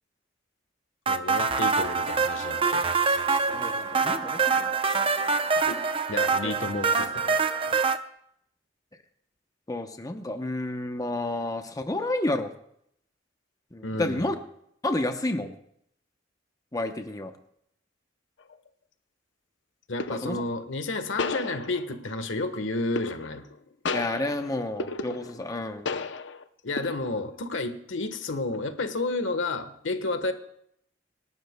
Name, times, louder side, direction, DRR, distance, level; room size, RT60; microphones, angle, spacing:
voice 1, 1.1-2.8 5.7-5.8 6.1-7.4 13.8-14.3 19.9-23.4 26.6-30.3, left 2 dB, 85° left, 8 dB, 1.3 m, -31 dB
sound 1, 1.1-8.0, right 5 dB, 30° right, 0.6 m, -25 dB
voice 2, 3.5-4.7 6.4-6.6 9.7-12.5 13.7-14.4 14.8-15.5 16.7-17.3 20.1-20.4 23.9-25.9, left 1 dB, 20° left, 6 dB, 0.8 m, -30 dB
sound 2, 18.4-18.7 20.0-20.5 21.2-22.1 23.0-23.5 23.8-25.6 25.9-26.4 26.8-27.4, left 4 dB, 65° left, 0.7 m, -33 dB
27.0 x 12.0 x 2.2 m, 0.71 s
head